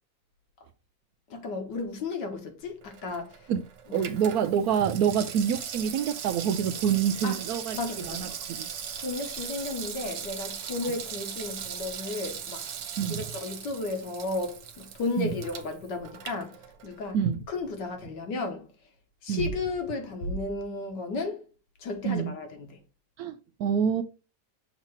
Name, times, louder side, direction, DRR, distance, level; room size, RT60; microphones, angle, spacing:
voice 1, 1.3-3.5 3.9-4.0 7.2-7.4 7.7-8.3 9.0-12.7 13.1-16.6 16.8-17.2 17.5-18.7 19.2-21.5 21.8-22.8, left 3 dB, 65° left, 1.7 m, -33 dB
Water tap faucet / Sink (filling or washing), 2.8-17.1 17.4-17.5, right 8 dB, 65° right, 1.4 m, -39 dB
voice 2, 3.9-7.8 8.1-8.7 13.0-13.2 15.2-15.3 17.1-17.4 19.3-19.5 22.0-22.3 23.2-24.0, right 8 dB, 90° right, 0.8 m, -27 dB
6.7 x 2.9 x 5.5 m
omnidirectional pair, 2.2 m